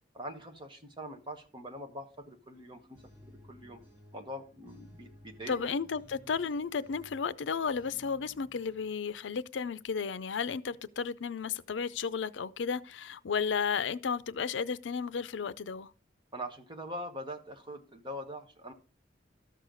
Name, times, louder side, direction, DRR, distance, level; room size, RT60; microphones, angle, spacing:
voice 1, 0.1-3.8 4.1-5.7 16.3-18.7, equal, 25° right, 1.4 m, -43 dB
sound 1, 2.5-8.9, left 1 dB, 10° right, 2.1 m, -57 dB
voice 2, 5.5-15.9, left 6 dB, 80° left, 0.5 m, -33 dB
13.0 x 6.6 x 3.9 m
head